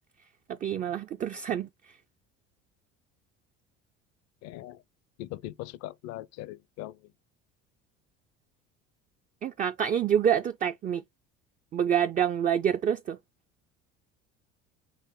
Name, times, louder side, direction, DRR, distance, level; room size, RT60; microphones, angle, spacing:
voice 1, 0.5-1.9 9.4-11.0 11.7-13.2, right 9 dB, 30° right, 0.3 m, -27 dB
voice 2, 4.4-4.8 5.2-7.0, left 15 dB, 60° left, 0.5 m, -40 dB
5.7 x 2.1 x 3.6 m
supercardioid pair, 80°, 29 cm